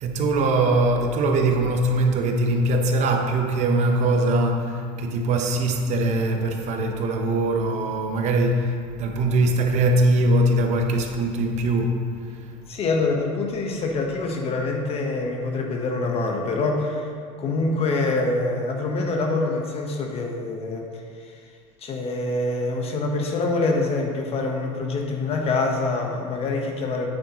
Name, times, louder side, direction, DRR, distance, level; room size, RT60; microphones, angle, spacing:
voice 1, 0.0-12.4, right 2 dB, 50° right, 3 dB, 1.0 m, -22 dB
voice 2, 12.7-17.1 17.4-20.9 21.2-21.4 21.8-27.1, left 3 dB, 40° left, 1 dB, 1.2 m, -25 dB
8.9 x 7.9 x 3.1 m, 2.2 s
supercardioid pair, 115°, 16 cm